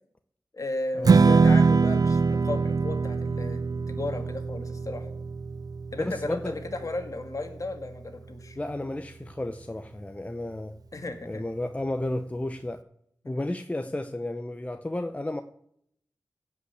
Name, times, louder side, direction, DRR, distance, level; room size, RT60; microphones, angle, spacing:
voice 1, 0.5-3.6 3.9-5.1 5.9-8.6 10.9-11.4 13.2-13.4, left 2 dB, 50° left, 6 dB, 2.0 m, -35 dB
Strum, 1.0-7.3, right 4 dB, 60° right, 0.5 m, -23 dB
voice 2, 6.0-6.6 8.6-10.7 11.2-12.8 13.3-15.4, left 1 dB, 20° left, 8 dB, 0.7 m, -32 dB
16.5 x 5.6 x 8.0 m, 0.70 s
wide cardioid pair, 90°, 7 cm